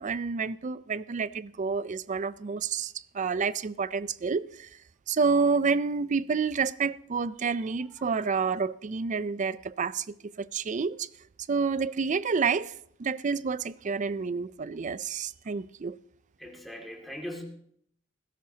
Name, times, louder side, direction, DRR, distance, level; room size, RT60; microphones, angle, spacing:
voice 1, 0.0-4.7 5.1-11.1 11.5-12.7 13.0-16.0, right 5 dB, 40° right, 0.4 m, -29 dB
voice 2, 16.4-17.4, equal, ahead, 2.3 m, -40 dB
17.0 x 16.0 x 2.8 m
head